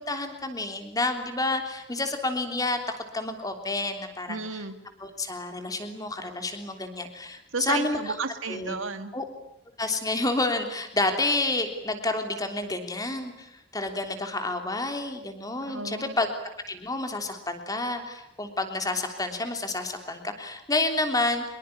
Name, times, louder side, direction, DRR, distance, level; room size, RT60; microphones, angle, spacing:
voice 1, 0.0-2.8 3.1-4.4 5.0-8.1 8.5-8.7 9.1-9.2 9.8-16.3 16.7-21.4, left 2 dB, 20° left, 6 dB, 3.3 m, -29 dB
voice 2, 4.3-4.8 7.5-9.1 15.7-16.2, right 4 dB, 85° right, 9 dB, 2.3 m, -33 dB
25.0 x 22.5 x 10.0 m, 0.80 s
head